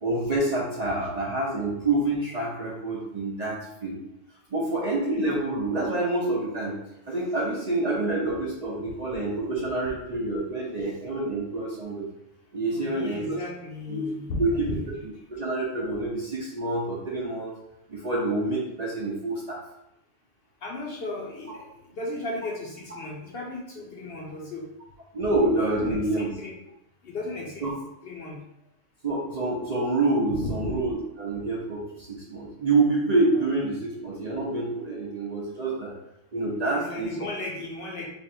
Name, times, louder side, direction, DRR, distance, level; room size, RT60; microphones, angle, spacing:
voice 1, 0.0-4.0 4.5-6.8 7.1-12.0 12.5-13.4 13.9-14.1 14.4-14.8 15.3-17.5 17.9-19.6 25.1-26.3 27.6-27.7 29.0-35.9 36.3-37.1, right 2 dB, 40° right, -5 dB, 0.7 m, -27 dB
voice 2, 12.7-14.9 20.6-24.7 25.7-26.5 27.0-27.7 28.0-28.4 30.3-30.7 36.5-38.1, left 2 dB, 55° left, -2 dB, 0.8 m, -35 dB
3.3 x 2.4 x 4.2 m, 0.84 s
omnidirectional pair, 1.3 m